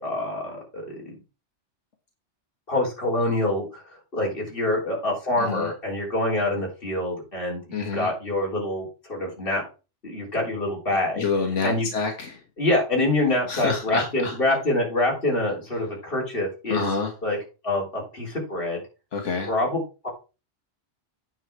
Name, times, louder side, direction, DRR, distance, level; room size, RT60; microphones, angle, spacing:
voice 1, 0.0-1.1 2.7-3.8 4.1-9.6 10.0-11.2 11.6-11.9 12.6-16.9 17.2-17.4 17.6-18.8 19.5-20.1, left 1 dB, 50° left, -2 dB, 3.8 m, -26 dB
voice 2, 5.4-5.7 7.7-8.1 11.2-12.4 13.5-14.6 16.7-17.1 19.1-19.5, left 4 dB, 85° left, 2 dB, 1.7 m, -28 dB
9.0 x 5.5 x 4.6 m, 0.31 s
omnidirectional pair, 1.2 m